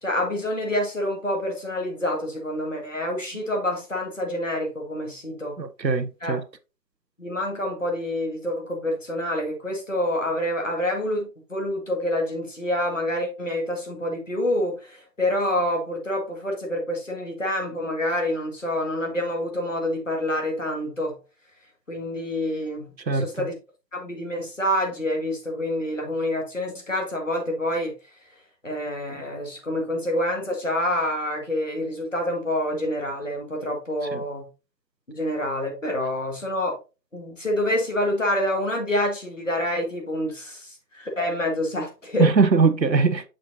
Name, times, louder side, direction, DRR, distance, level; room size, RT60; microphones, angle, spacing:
voice 1, 0.0-5.6 6.2-6.3 7.2-21.2 21.9-23.6 23.9-27.9 28.6-34.5 35.1-36.8 37.1-42.3, left 1 dB, 50° left, 1.9 m, -27 dB
voice 2, 5.6-6.4 23.1-23.5 34.1-34.2 42.2-43.2, right 4 dB, 85° right, 0.9 m, -21 dB
6.3 x 6.2 x 2.6 m
figure-of-eight pair, 170°, 50 cm